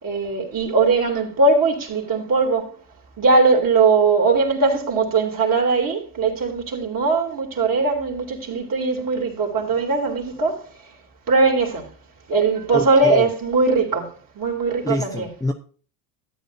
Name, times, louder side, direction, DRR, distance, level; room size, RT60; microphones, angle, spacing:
voice 1, 0.0-2.7 3.2-10.6 11.3-11.9 12.3-15.3, right 3 dB, 40° right, 3.4 m, -20 dB
voice 2, 12.7-13.2 14.8-15.5, left 1 dB, 5° left, 0.8 m, -26 dB
13.5 x 9.0 x 2.7 m
hypercardioid pair, 75°, 50 cm